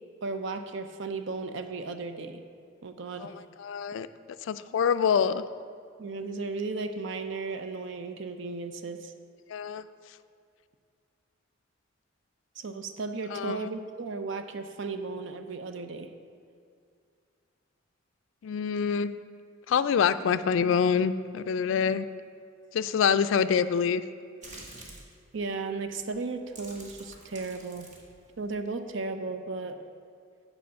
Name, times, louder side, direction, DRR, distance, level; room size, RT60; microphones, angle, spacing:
voice 1, 0.2-2.4 2.8-3.3 6.0-9.1 12.6-16.1 25.3-27.9 28.4-29.8, right 3 dB, 65° right, 8 dB, 0.6 m, -35 dB
voice 2, 3.2-4.1 4.5-5.4 9.5-9.8 13.3-13.6 18.4-19.1 19.7-22.1 22.7-24.0, left 7 dB, 70° left, 13 dB, 0.3 m, -26 dB
sound 1, 24.4-25.1 25.9-26.1 26.4-28.9, right 2 dB, 40° right, 1.3 m, -48 dB
7.7 x 4.9 x 6.9 m, 2.3 s
head